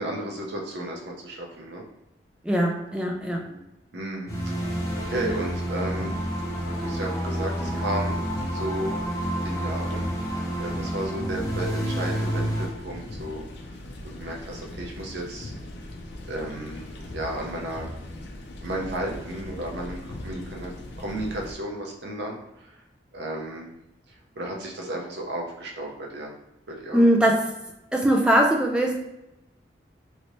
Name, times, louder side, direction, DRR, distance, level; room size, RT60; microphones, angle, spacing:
voice 1, 0.0-1.8 3.4-3.6 3.9-4.8 5.1-6.1 6.8-8.2 8.5-9.0 9.4-13.4 14.0-15.5 16.2-16.9 17.1-17.9 18.6-20.7 21.0-22.7 23.1-23.7 24.1-26.3 26.7-27.1, right 1 dB, 70° right, 0 dB, 0.7 m, -33 dB
voice 2, 2.4-3.5 26.9-27.6 27.9-29.0, right 1 dB, 5° right, 0 dB, 0.3 m, -21 dB
sound 1, 4.3-12.7, right 1 dB, 15° left, 0.7 m, -29 dB
sound 2, 4.6-21.5, left 1 dB, 70° left, 0.5 m, -40 dB
3.1 x 2.7 x 3.0 m, 0.92 s
head